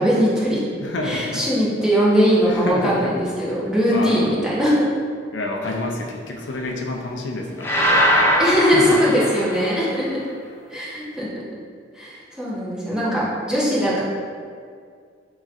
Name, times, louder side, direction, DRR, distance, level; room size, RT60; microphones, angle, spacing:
voice 1, 0.0-0.6 1.0-4.9 8.4-10.2 10.7-11.3 12.0-14.0, equal, 5° right, -8 dB, 1.0 m, -20 dB
voice 2, 0.8-1.4 2.5-3.1 3.9-4.3 5.3-7.8 8.7-9.1, left 2 dB, 75° left, 0 dB, 0.5 m, -28 dB
sound 1, 7.6-9.9, equal, 15° left, 0.5 m, -20 dB
6.5 x 3.0 x 2.5 m, 2.1 s
head